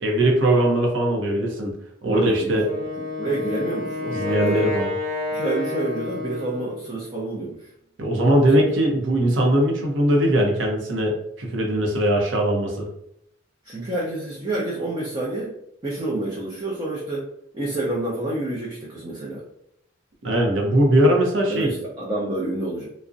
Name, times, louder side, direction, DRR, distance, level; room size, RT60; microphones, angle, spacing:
voice 1, 0.0-1.7 2.0-2.6 4.1-4.9 8.0-12.9 20.2-21.7, right 1 dB, 75° right, 0 dB, 0.6 m, -20 dB
voice 2, 2.1-2.9 3.2-4.7 5.3-7.7 8.5-8.7 13.6-15.5 15.8-17.2 17.5-19.4 21.5-22.9, right 2 dB, 25° right, -5 dB, 0.4 m, -28 dB
Wind instrument woodwind instrument, 2.6-6.9, left 2 dB, ahead, 0.9 m, -29 dB
2.5 x 2.0 x 2.4 m, 0.74 s
head